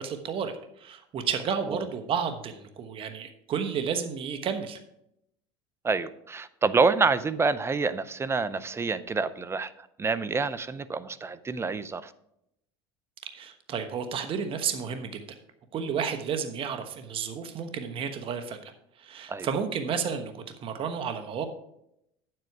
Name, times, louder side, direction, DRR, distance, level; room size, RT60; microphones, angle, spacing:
voice 1, 0.0-4.8 13.3-15.2 15.7-18.7 19.0-21.5, right 7 dB, 40° right, 7 dB, 1.1 m, -32 dB
voice 2, 5.8-12.1 19.3-19.5, right 4 dB, 20° right, 15 dB, 0.6 m, -27 dB
9.2 x 7.8 x 4.6 m, 0.79 s
supercardioid pair, 105°, 14 cm